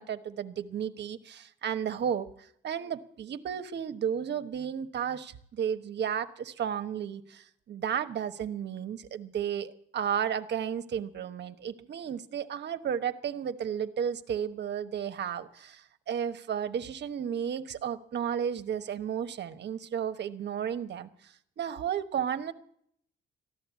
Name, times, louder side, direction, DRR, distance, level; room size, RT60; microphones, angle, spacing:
voice 1, 0.0-22.5, right 8 dB, 60° right, 10 dB, 1.1 m, -33 dB
14.5 x 11.0 x 8.3 m, 0.66 s
cardioid pair, 90°, 20 cm